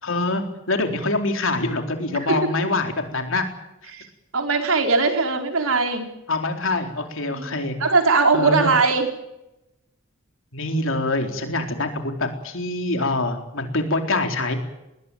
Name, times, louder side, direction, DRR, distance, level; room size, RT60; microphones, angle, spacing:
voice 1, 0.0-3.5 3.8-3.9 6.3-7.8 8.3-8.7 10.5-14.5, left 2 dB, 70° left, 4 dB, 4.1 m, -25 dB
voice 2, 4.3-6.1 7.3-9.1, right 4 dB, 85° right, 4 dB, 4.4 m, -20 dB
21.0 x 20.5 x 9.2 m, 0.90 s
head